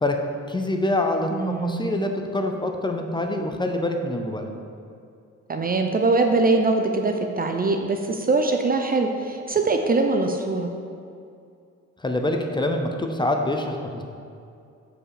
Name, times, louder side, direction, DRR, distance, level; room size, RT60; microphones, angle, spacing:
voice 1, 0.5-4.5 12.0-14.0, left 1 dB, 15° left, 4 dB, 0.7 m, -25 dB
voice 2, 1.3-1.9 5.5-10.7, right 3 dB, 30° right, 5 dB, 0.5 m, -22 dB
7.2 x 5.0 x 4.9 m, 2.5 s
cardioid pair, 90°, 30 cm